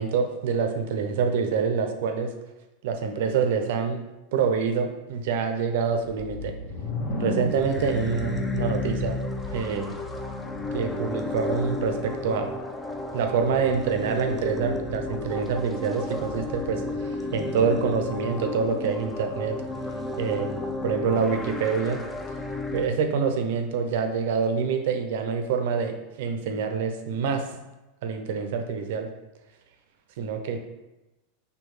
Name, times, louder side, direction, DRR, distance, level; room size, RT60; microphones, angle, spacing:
voice 1, 0.0-2.3 2.8-4.0 4.3-6.5 7.2-9.2 9.5-10.0 10.7-12.5 13.1-16.8 17.3-19.6 20.2-20.5 20.8-22.0 22.7-27.4 28.0-29.1 30.2-30.6, right 6 dB, 70° right, 5 dB, 0.5 m, -26 dB
sound 1, 6.2-9.9, left 2 dB, 45° left, 1.0 m, -34 dB
sound 2, 7.4-22.9, left 2 dB, 15° left, 0.4 m, -32 dB
4.4 x 2.7 x 3.2 m, 1.0 s
hypercardioid pair, 105°, 0 cm